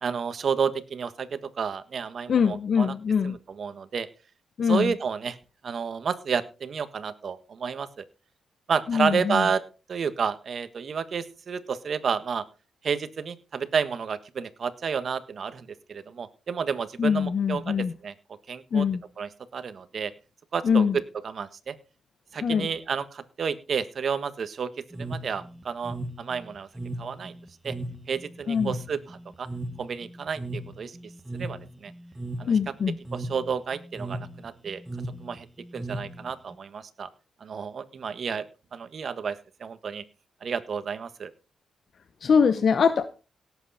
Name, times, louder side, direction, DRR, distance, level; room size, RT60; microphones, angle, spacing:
voice 1, 0.0-2.9 3.2-4.1 4.6-5.4 5.6-8.0 8.7-9.6 9.9-12.4 12.8-18.1 18.5-18.9 19.2-20.1 20.5-21.7 22.3-24.7 25.0-26.7 27.0-27.3 27.6-27.7 28.1-29.5 29.8-31.0 31.3-31.9 32.4-32.5 33.1-34.8 35.2-35.5 35.7-37.1 37.4-38.4 38.7-40.0 40.4-41.3, right 6 dB, 55° right, 12 dB, 1.5 m, -31 dB
voice 2, 2.3-3.4 4.6-4.9 8.9-9.5 17.0-17.9 18.7-19.0 20.6-20.9 22.4-22.7 28.5-28.7 32.5-33.0 42.2-43.1, left 6 dB, 55° left, 11 dB, 1.0 m, -23 dB
sound 1, 24.9-36.5, right 1 dB, 10° right, 1.7 m, -37 dB
17.5 x 8.3 x 4.3 m, 0.32 s
cardioid pair, 95°, 0 cm